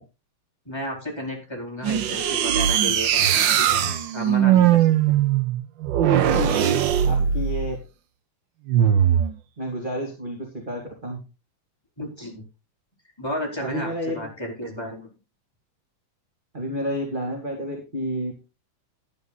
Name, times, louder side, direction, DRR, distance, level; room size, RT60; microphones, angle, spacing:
voice 1, 0.7-5.2 12.0-12.4 13.2-15.1, equal, 10° left, -1 dB, 4.0 m, -33 dB
sound 1, 1.8-7.8 8.7-9.3, right 9 dB, 85° right, 1.0 m, -20 dB
voice 2, 6.3-6.7 7.1-7.8 9.6-11.2 13.6-14.2 16.5-18.3, equal, 15° right, 0 dB, 2.5 m, -30 dB
12.5 x 9.8 x 4.1 m, 0.29 s
omnidirectional pair, 3.3 m